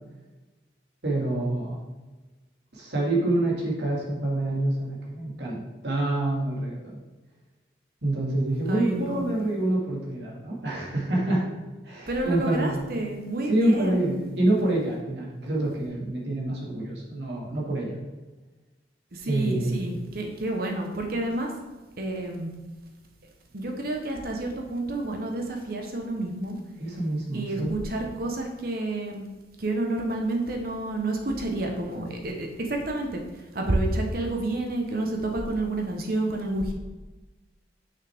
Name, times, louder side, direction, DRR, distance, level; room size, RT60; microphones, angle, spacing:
voice 1, 1.0-1.8 2.7-7.0 8.0-11.5 11.8-12.9 13.5-18.0 19.2-19.8 26.8-27.8, right 1 dB, 70° right, -3 dB, 1.9 m, -27 dB
voice 2, 8.7-9.2 12.1-14.1 19.1-21.5 22.0-22.5 23.5-26.6 27.3-29.3 29.6-33.2 33.5-36.7, right 2 dB, 50° right, 2 dB, 0.9 m, -29 dB
6.4 x 6.0 x 3.5 m, 1.2 s
head